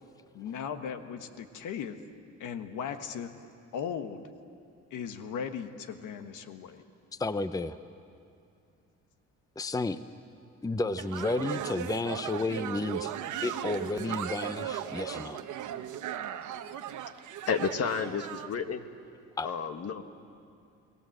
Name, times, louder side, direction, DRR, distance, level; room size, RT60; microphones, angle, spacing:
voice 1, 0.3-2.0 2.4-3.3 3.7-4.3 4.9-6.8, left 7 dB, 85° left, 8 dB, 1.3 m, -37 dB
voice 2, 7.2-7.8 9.6-10.0 10.6-13.1 13.4-15.4 19.4-19.5, left 3 dB, 10° left, 12 dB, 0.7 m, -32 dB
sound 1, 11.0-18.5, right 10 dB, 75° right, 1.1 m, -37 dB
voice 3, 17.5-18.8 19.4-20.0, left 6 dB, 55° left, 8 dB, 1.5 m, -31 dB
29.5 x 19.0 x 7.8 m, 2.5 s
cardioid pair, 90°, 30 cm